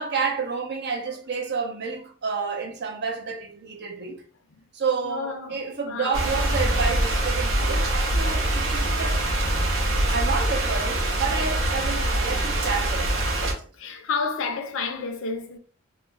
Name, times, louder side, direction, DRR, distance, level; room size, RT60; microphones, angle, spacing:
voice 1, 0.0-4.2 4.7-9.3 10.1-13.7, right 5 dB, 55° right, 0.6 m, -30 dB
voice 2, 5.0-6.3 10.0-10.1 13.3-13.4 13.8-15.6, left 4 dB, 70° left, 0.5 m, -31 dB
sound 1, 6.1-13.5, right 1 dB, 75° right, 0.9 m, -24 dB
2.4 x 2.1 x 3.1 m
head